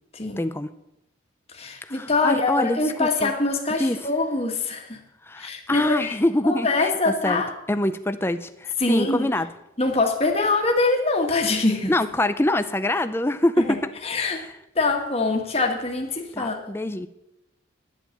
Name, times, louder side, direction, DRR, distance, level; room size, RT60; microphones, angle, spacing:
voice 1, 0.4-0.7 1.8-3.3 3.8-4.0 5.2-7.4 7.7-9.5 11.9-13.9 14.2-14.5 16.3-17.1, left 1 dB, 10° left, 11 dB, 0.5 m, -25 dB
voice 2, 1.5-5.0 5.4-6.2 6.4-7.5 8.8-9.3 9.8-11.9 13.6-13.7 14.0-14.4 14.8-16.7, left 3 dB, 30° left, 2 dB, 1.7 m, -24 dB
11.5 x 8.1 x 7.8 m, 0.88 s
head